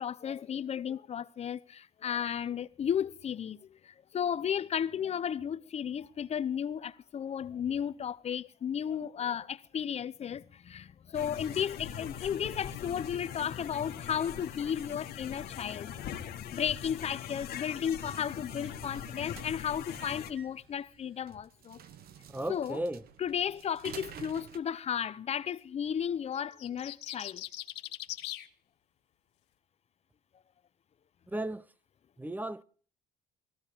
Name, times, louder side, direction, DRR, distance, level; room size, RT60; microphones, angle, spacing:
voice 1, 0.0-3.6 3.8-16.0 16.5-21.8 22.5-22.8 23.2-27.4, left 8 dB, 40° left, 0.7 m, -34 dB
sound 1, 11.1-20.3, left 9 dB, 65° left, 1.6 m, -42 dB
sound 2, 18.0-24.6, right 8 dB, 65° right, 1.2 m, -50 dB
voice 2, 22.3-23.0 31.3-31.6 32.2-32.6, right 1 dB, 10° right, 0.5 m, -35 dB
sound 3, 26.4-28.5, left 15 dB, 85° left, 1.1 m, -40 dB
18.0 x 15.0 x 3.4 m
cardioid pair, 110°, 17 cm